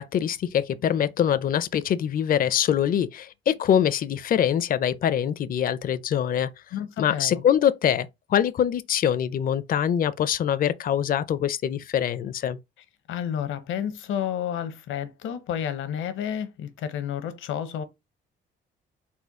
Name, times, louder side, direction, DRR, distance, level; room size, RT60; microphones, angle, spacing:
voice 1, 0.0-6.5 7.0-12.6, left 9 dB, 45° left, 0.4 m, -24 dB
voice 2, 6.7-7.4 13.1-17.8, left 9 dB, 80° left, 0.8 m, -31 dB
4.2 x 2.2 x 4.6 m
cardioid pair, 90°, 20 cm